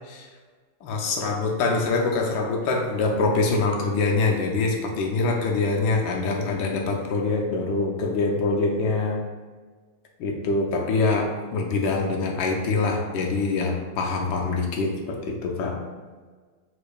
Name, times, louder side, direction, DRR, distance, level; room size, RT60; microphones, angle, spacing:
voice 1, 0.8-9.2 10.2-15.8, left 3 dB, 75° left, 1 dB, 1.3 m, -24 dB
5.0 x 4.1 x 2.3 m, 1.4 s
omnidirectional pair, 2.2 m